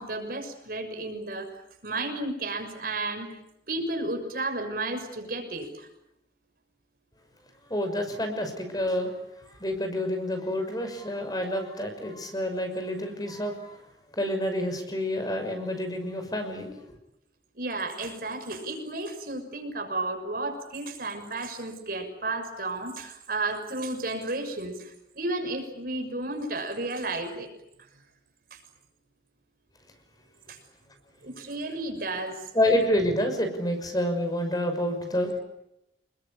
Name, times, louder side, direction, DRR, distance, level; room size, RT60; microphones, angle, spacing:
voice 1, 0.0-3.3 3.7-5.9 17.5-27.5 28.5-28.6 30.5-30.6 31.2-32.5, right 2 dB, 55° right, 5 dB, 6.7 m, -33 dB
voice 2, 7.7-9.1 9.6-13.8 14.2-16.7 32.5-35.4, left 1 dB, 20° left, 6 dB, 6.1 m, -28 dB
28.5 x 22.0 x 9.0 m, 0.84 s
head